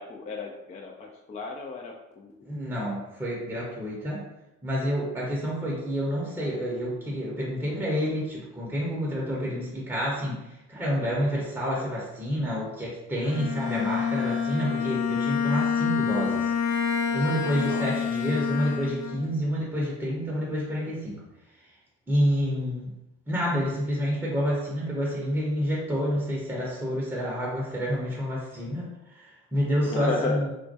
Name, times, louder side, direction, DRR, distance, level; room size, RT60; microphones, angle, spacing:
voice 1, 0.0-2.3 5.7-5.8 17.6-17.8 29.8-30.4, left 4 dB, 20° left, 1 dB, 0.3 m, -34 dB
voice 2, 2.4-4.2 4.6-10.4 10.7-16.5 17.1-21.2 22.1-22.9 23.3-30.5, equal, 5° right, -5 dB, 0.7 m, -28 dB
Bowed string instrument, 13.2-19.3, left 6 dB, 75° left, 0.5 m, -27 dB
2.2 x 2.1 x 2.7 m, 0.92 s
figure-of-eight pair, 45°, 40 cm